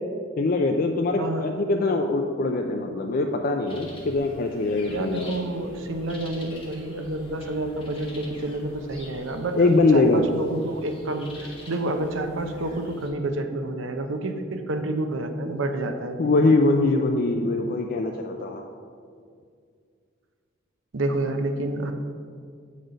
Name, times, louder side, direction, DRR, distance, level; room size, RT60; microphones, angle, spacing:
voice 1, 0.4-5.4 9.6-10.3 16.2-18.7, left 2 dB, 45° left, 3 dB, 0.4 m, -22 dB
sound 1, 3.7-13.1, left 1 dB, 30° left, 1.2 m, -45 dB
voice 2, 4.9-16.4 20.9-21.9, right 2 dB, 85° right, 7 dB, 0.7 m, -29 dB
7.8 x 4.2 x 5.1 m, 2.2 s
head